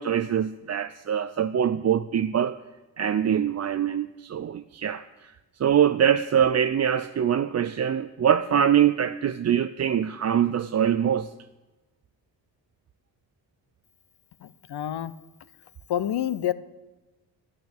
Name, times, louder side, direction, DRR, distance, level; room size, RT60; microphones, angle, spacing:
voice 1, 0.0-2.6 3.0-5.3 5.6-11.3, right 9 dB, 35° right, 0.5 m, -23 dB
voice 2, 14.7-15.1 15.9-16.5, left 11 dB, 60° left, 0.8 m, -27 dB
12.0 x 8.5 x 8.0 m
cardioid pair, 65°, 44 cm